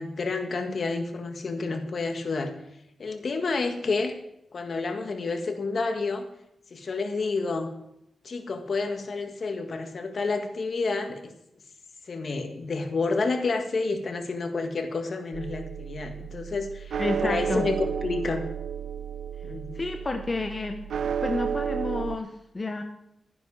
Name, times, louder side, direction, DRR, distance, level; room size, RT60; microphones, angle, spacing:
voice 1, 0.0-2.5 3.0-4.1 4.5-6.2 6.7-7.7 8.2-11.3 12.1-18.4 19.4-19.8, left 3 dB, 60° left, 6 dB, 1.7 m, -29 dB
sound 1, 15.3-22.2, right 8 dB, 90° right, 0.3 m, -32 dB
voice 2, 17.0-17.7 19.7-20.8 21.2-22.8, left 2 dB, 35° left, 5 dB, 1.0 m, -30 dB
12.5 x 10.5 x 4.8 m, 0.80 s
cardioid pair, 80°, 0 cm